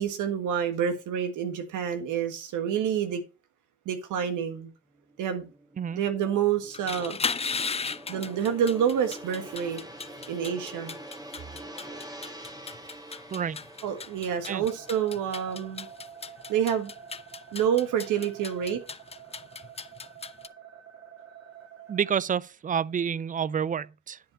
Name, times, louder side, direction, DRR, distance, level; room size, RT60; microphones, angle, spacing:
voice 1, 0.0-3.2 3.9-4.7 5.2-5.5 5.9-7.2 7.8-9.8 10.3-10.9 13.8-15.9 16.5-16.9 17.5-18.8, right 8 dB, 85° right, 1.6 m, -28 dB
Gong, 4.9-17.4 17.7-18.0, right 1 dB, 15° right, 1.4 m, -46 dB
sound 1, 6.6-20.5, left 5 dB, 20° left, 0.5 m, -37 dB
sound 2, 14.3-22.1, right 8 dB, 45° right, 2.6 m, -48 dB
voice 2, 21.9-24.2, right 7 dB, 30° right, 0.4 m, -29 dB
10.0 x 5.0 x 5.4 m
cardioid pair, 90°, 30 cm